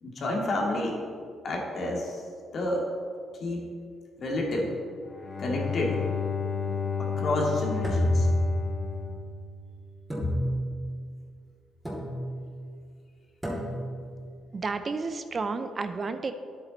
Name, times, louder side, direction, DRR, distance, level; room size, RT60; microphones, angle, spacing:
voice 1, 0.0-1.0 1.4-2.2 2.5-2.9 3.4-3.7 4.2-4.7 5.4-6.0 7.0-8.3, left 1 dB, 55° left, -1 dB, 2.2 m, -29 dB
Bowed string instrument, 5.0-10.0, left 5 dB, 40° left, 1.0 m, -32 dB
sound 1, 7.8-9.0 10.1-10.9 11.8-12.5 13.4-14.1, left 1 dB, 10° right, 2.5 m, -28 dB
voice 2, 14.5-16.3, right 4 dB, 35° right, 9 dB, 0.5 m, -31 dB
10.0 x 8.4 x 4.0 m, 2.2 s
cardioid pair, 90°, 0 cm